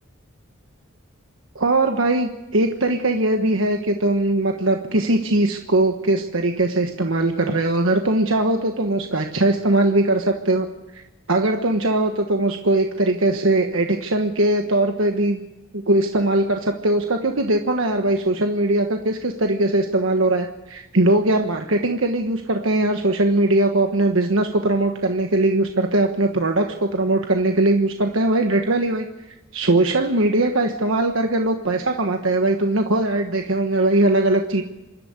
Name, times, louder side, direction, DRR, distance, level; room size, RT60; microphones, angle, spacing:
voice 1, 1.5-10.7 10.9-11.0 11.3-15.4 15.7-29.1 29.5-34.6, right 2 dB, 70° right, 4 dB, 1.3 m, -20 dB
27.0 x 12.5 x 8.2 m, 1.0 s
head